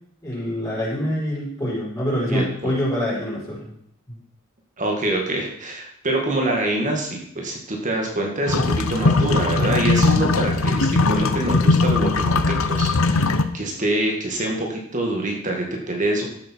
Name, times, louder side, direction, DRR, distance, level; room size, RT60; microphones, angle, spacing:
voice 1, 0.2-3.7, equal, 20° left, -8 dB, 6.4 m, -25 dB
voice 2, 2.3-2.7 4.8-16.2, right 1 dB, 40° right, 1 dB, 2.1 m, -25 dB
sound 1, 8.5-13.5, left 3 dB, 80° left, 0.9 m, -19 dB
14.5 x 8.3 x 4.7 m, 0.70 s
head